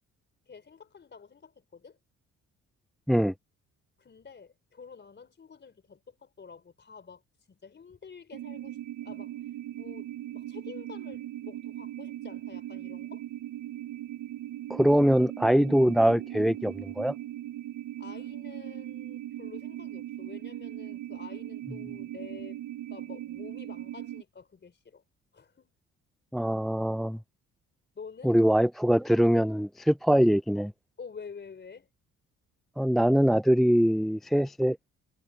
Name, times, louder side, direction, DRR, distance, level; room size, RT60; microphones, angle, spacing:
voice 1, 0.5-2.0 4.0-7.2 7.5-13.2 18.0-22.6 22.9-25.0 25.3-25.7 28.0-28.3 31.0-31.9 34.3-34.5, left 5 dB, 35° left, 3.8 m, -48 dB
sound 1, 8.3-24.2, right 13 dB, 80° right, 0.8 m, -39 dB
voice 2, 14.7-17.1 26.3-27.2 28.2-30.7 32.8-34.8, equal, ahead, 0.4 m, -23 dB
cardioid pair, 90°, 30 cm